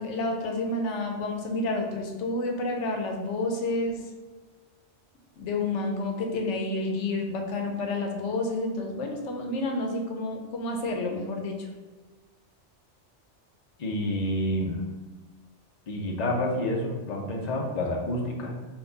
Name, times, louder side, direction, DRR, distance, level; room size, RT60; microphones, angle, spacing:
voice 1, 0.0-4.0 5.4-11.7, left 2 dB, 85° left, 2 dB, 1.0 m, -29 dB
voice 2, 13.8-14.8 15.9-18.5, left 1 dB, 45° left, 0 dB, 0.6 m, -28 dB
4.5 x 2.3 x 3.9 m, 1.3 s
omnidirectional pair, 1.2 m